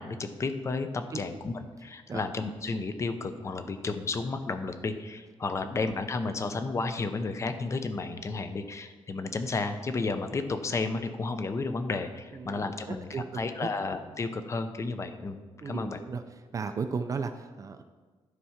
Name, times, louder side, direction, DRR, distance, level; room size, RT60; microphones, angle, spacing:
voice 1, 0.0-15.4 15.7-16.0, left 3 dB, 30° left, 9 dB, 0.6 m, -32 dB
voice 2, 12.3-13.2 13.6-13.7 15.6-16.2 16.5-17.8, right 5 dB, 35° right, 8 dB, 0.4 m, -35 dB
11.5 x 4.6 x 5.7 m, 1.3 s
wide cardioid pair, 180°, 10 cm